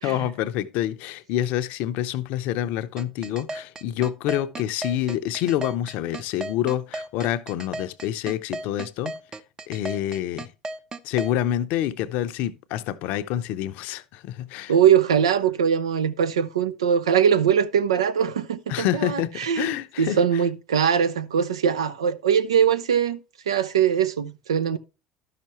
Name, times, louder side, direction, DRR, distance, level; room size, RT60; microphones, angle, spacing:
voice 1, 0.0-9.1 9.7-10.5 11.0-14.7 18.7-20.2, left 12 dB, 65° left, 0.6 m, -27 dB
sound 1, 3.0-11.3, right 2 dB, 25° right, 0.7 m, -34 dB
voice 2, 14.7-23.2 23.5-24.8, right 8 dB, 85° right, 0.5 m, -22 dB
12.0 x 5.8 x 3.0 m
hypercardioid pair, 70°, 3 cm